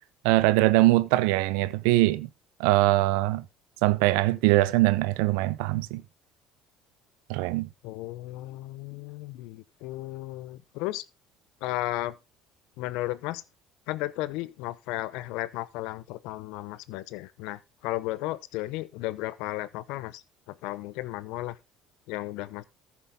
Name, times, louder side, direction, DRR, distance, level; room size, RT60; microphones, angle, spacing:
voice 1, 0.2-2.3 2.6-3.4 3.8-6.0 7.3-7.7, right 18 dB, 75° right, 0.7 m, -22 dB
voice 2, 7.8-11.0 11.6-12.2 12.8-13.4 13.9-21.6 22.1-22.6, left 17 dB, 70° left, 0.8 m, -34 dB
14.0 x 7.2 x 3.7 m
hypercardioid pair, 65°, 0 cm